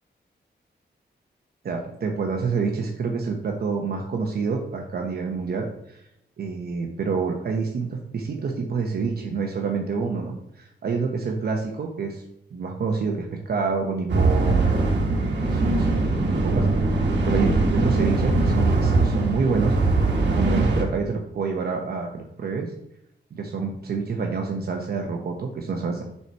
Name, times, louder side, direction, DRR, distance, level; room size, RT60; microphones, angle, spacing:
voice 1, 1.6-6.0 6.4-12.2 12.5-15.0 15.4-16.7 16.9-19.8 20.3-22.7 23.3-26.0, right 5 dB, 60° right, 2 dB, 0.9 m, -28 dB
sound 1, 14.1-20.8, right 2 dB, 80° right, 1.5 m, -21 dB
5.5 x 4.7 x 5.6 m, 0.79 s
wide cardioid pair, 135°, 18 cm